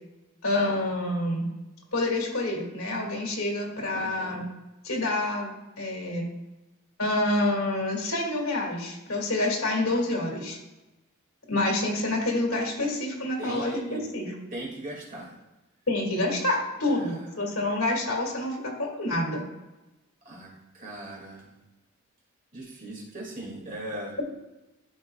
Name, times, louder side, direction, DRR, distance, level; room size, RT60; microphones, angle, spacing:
voice 1, 0.4-1.5 1.9-4.5 4.8-5.5 5.8-6.3 7.0-10.6 11.5-14.3 15.9-19.5, left 2 dB, 75° left, -1 dB, 2.0 m, -27 dB
voice 2, 3.9-4.4 13.4-14.0 14.5-15.4 16.8-17.3 20.2-21.5 22.5-24.2, right 1 dB, 35° right, -2 dB, 2.0 m, -39 dB
12.5 x 4.8 x 2.3 m, 1.0 s
head